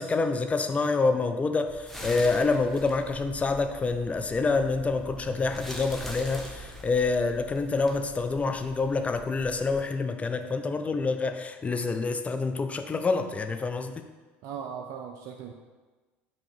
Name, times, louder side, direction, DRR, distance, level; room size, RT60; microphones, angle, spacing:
voice 1, 0.0-14.1, left 3 dB, 20° left, 7 dB, 0.6 m, -27 dB
sound 1, 1.7-9.7, right 1 dB, ahead, 1.2 m, -43 dB
voice 2, 14.4-15.5, right 7 dB, 60° right, 2 dB, 0.5 m, -38 dB
7.7 x 3.0 x 4.5 m, 1.3 s
hypercardioid pair, 80°, 6 cm